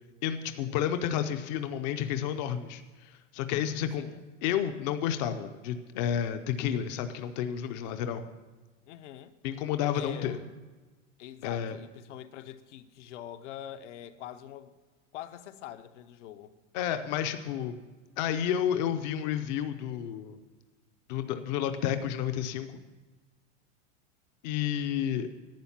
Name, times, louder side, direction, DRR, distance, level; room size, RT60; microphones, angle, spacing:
voice 1, 0.2-4.0 4.4-8.2 9.4-10.4 11.4-11.8 16.7-17.8 18.2-20.4 21.1-22.7 24.4-25.3, left 9 dB, 35° left, 0.6 m, -31 dB
voice 2, 8.9-9.3 9.9-10.5 11.2-14.7 15.1-16.5, left 11 dB, 70° left, 0.9 m, -44 dB
11.5 x 8.9 x 7.1 m
supercardioid pair, 170°, 37 cm